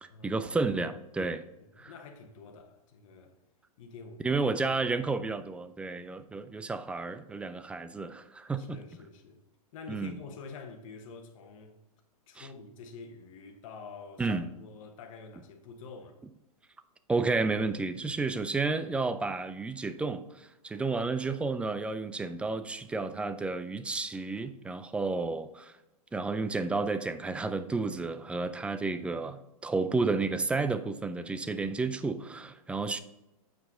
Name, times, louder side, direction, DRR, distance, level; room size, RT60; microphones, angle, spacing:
voice 1, 0.0-1.4 1.8-1.9 4.2-8.8 9.9-10.1 12.4-12.5 14.2-14.5 17.1-25.7 26.1-33.0, right 3 dB, 5° right, 0.3 m, -31 dB
voice 2, 1.6-3.3 3.8-4.4 8.6-9.4 9.7-11.8 12.3-16.2, left 4 dB, 60° left, 1.2 m, -47 dB
7.9 x 4.6 x 3.7 m
hypercardioid pair, 120°, 19 cm